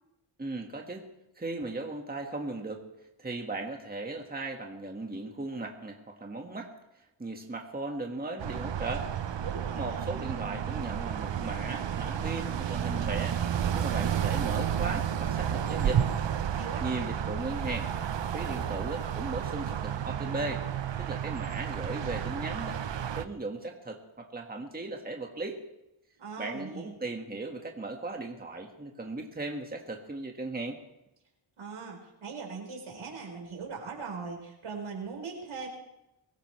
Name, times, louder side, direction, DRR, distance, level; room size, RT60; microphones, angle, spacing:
voice 1, 0.4-1.0 1.4-2.9 3.2-6.7 7.2-9.1 9.7-13.4 13.7-16.0 16.8-17.9 18.3-20.6 21.0-22.8 23.2-25.6 26.4-30.8, right 2 dB, 20° right, 2 dB, 1.7 m, -37 dB
sound 1, 8.4-23.3, right 9 dB, 60° right, 0.9 m, -31 dB
voice 2, 9.4-10.1 16.5-16.9 26.2-26.9 31.6-35.7, right 5 dB, 80° right, 0 dB, 4.7 m, -40 dB
23.5 x 15.5 x 3.3 m, 0.89 s
wide cardioid pair, 90°, 49 cm